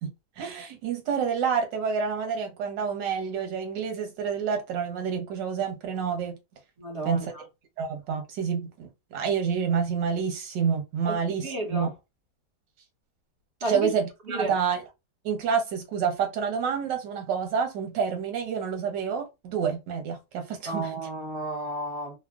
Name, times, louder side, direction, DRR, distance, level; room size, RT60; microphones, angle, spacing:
voice 1, 0.0-6.4 7.0-7.3 7.8-11.9 13.7-14.8 15.2-20.9, right 6 dB, 85° right, 1.5 m, -28 dB
voice 2, 6.8-7.4 11.1-11.9 13.6-13.9 14.3-14.6 20.7-22.2, right 1 dB, 45° right, 1.1 m, -32 dB
3.5 x 2.1 x 2.3 m
omnidirectional pair, 1.9 m